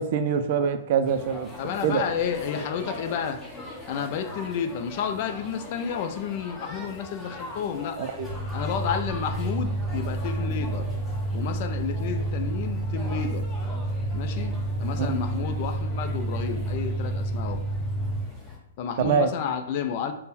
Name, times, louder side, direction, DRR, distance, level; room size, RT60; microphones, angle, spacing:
voice 1, 0.0-1.5 1.8-2.0 8.0-8.3 15.0-15.2 19.0-19.3, right 6 dB, 55° right, 10 dB, 0.4 m, -24 dB
sound 1, 1.0-18.6, left 2 dB, 10° left, 0.9 m, -42 dB
voice 2, 1.6-3.4 3.9-8.0 8.5-10.9 11.3-13.5 14.1-17.6 18.8-20.1, left 7 dB, 50° left, 7 dB, 0.4 m, -31 dB
sound 2, 8.2-18.2, right 1 dB, 70° left, 0.9 m, -29 dB
3.5 x 2.1 x 4.2 m, 0.81 s
hypercardioid pair, 120°, 0 cm